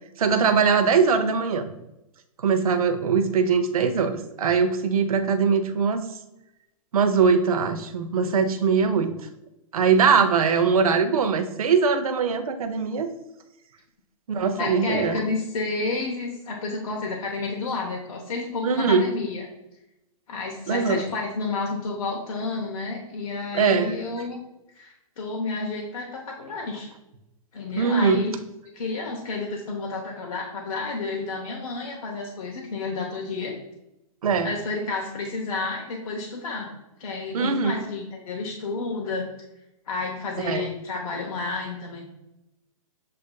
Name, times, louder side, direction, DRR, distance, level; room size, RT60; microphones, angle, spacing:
voice 1, 0.2-1.7 2.4-6.1 6.9-9.1 9.7-13.1 14.3-15.2 18.6-19.1 20.7-21.0 23.5-23.9 27.7-28.2 34.2-34.5 37.3-37.8 40.4-40.7, right 5 dB, 75° right, 8 dB, 0.6 m, -21 dB
voice 2, 14.6-19.5 20.3-24.4 24.7-26.9 27.5-28.3 28.7-33.5 34.4-36.7 37.0-39.2 39.9-42.1, left 3 dB, 70° left, 0 dB, 0.8 m, -30 dB
7.4 x 2.5 x 2.2 m, 0.91 s
hypercardioid pair, 180°, 19 cm